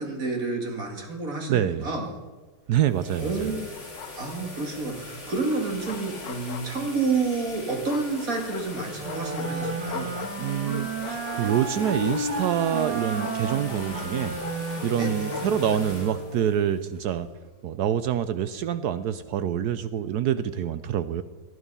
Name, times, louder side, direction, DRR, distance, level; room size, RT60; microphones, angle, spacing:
voice 1, 0.0-2.1 3.2-3.6 4.2-10.1 15.0-15.4, right 3 dB, 50° right, 2 dB, 2.7 m, -29 dB
voice 2, 1.5-1.9 2.7-3.5 10.4-14.3 14.8-17.3 17.6-21.2, right 9 dB, 70° right, 12 dB, 1.1 m, -26 dB
sound 1, 2.6-17.6, left 2 dB, 40° left, 4.1 m, -42 dB
Bark, 3.7-4.6 5.5-7.1 7.9-16.0, left 11 dB, 90° left, 1.3 m, -41 dB
Wind instrument woodwind instrument, 8.9-16.4, right 3 dB, 85° right, 2.9 m, -32 dB
19.0 x 11.0 x 5.5 m, 1.3 s
omnidirectional pair, 1.9 m